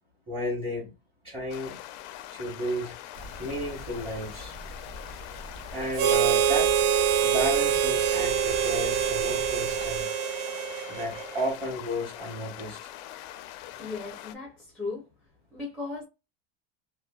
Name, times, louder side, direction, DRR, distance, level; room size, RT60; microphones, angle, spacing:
voice 1, 0.3-0.9 1.2-1.7 2.3-3.0 3.4-4.6 5.7-6.7 7.2-10.1 10.9-12.9, equal, 15° right, 1.2 m, -33 dB
sound 1, 1.5-14.3, left 13 dB, 70° left, 0.5 m, -43 dB
sound 2, 3.1-10.0, equal, 45° right, 0.9 m, -44 dB
Harmonica, 5.9-11.4, right 9 dB, 65° right, 0.5 m, -25 dB
voice 2, 13.8-15.1 15.5-16.0, left 3 dB, ahead, 0.6 m, -36 dB
3.0 x 2.2 x 2.2 m
cardioid pair, 155°, 36 cm